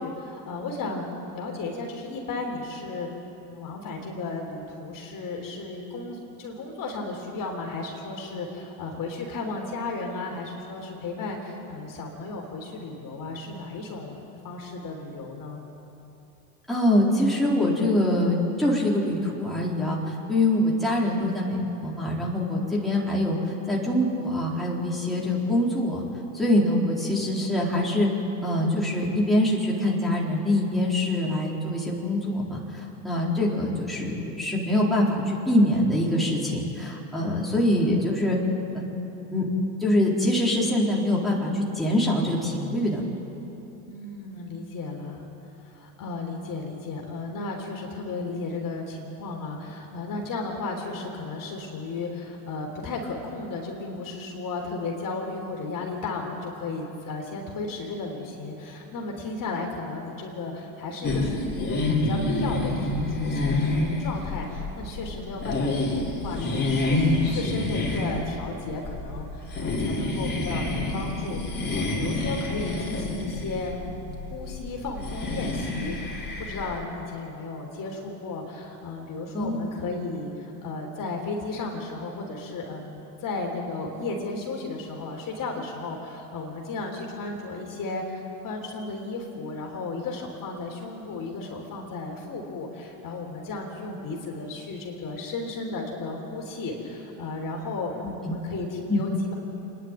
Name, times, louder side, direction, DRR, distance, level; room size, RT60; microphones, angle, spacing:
voice 1, 0.0-3.1 3.4-14.2 14.4-15.6 43.9-45.3 45.6-99.3, left 3 dB, 40° left, 0 dB, 3.7 m, -34 dB
voice 2, 16.7-23.4 23.7-26.0 26.3-28.1 28.4-38.4 38.7-39.5 39.8-43.0 79.3-79.7 98.0-98.4 98.9-99.0, left 1 dB, ahead, -5 dB, 4.1 m, -24 dB
sound 1, 61.0-76.8, left 2 dB, 20° left, 4.9 m, -28 dB
26.5 x 10.5 x 9.1 m, 3.0 s
hypercardioid pair, 90°, 50 cm